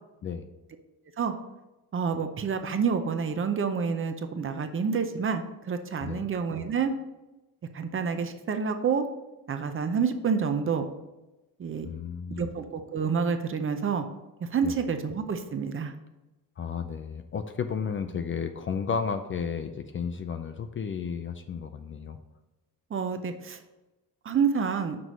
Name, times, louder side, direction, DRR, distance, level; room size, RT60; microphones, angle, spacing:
voice 1, 1.9-6.9 7.7-9.0 9.5-10.9 11.6-11.9 12.4-14.0 14.4-15.9 22.9-23.6 24.2-25.0, right 6 dB, 30° right, 8 dB, 0.6 m, -28 dB
voice 2, 11.8-12.5 14.6-14.7 16.6-22.2, left 6 dB, 35° left, 8 dB, 0.4 m, -33 dB
6.1 x 4.6 x 5.3 m, 1.0 s
cardioid pair, 125°, 39 cm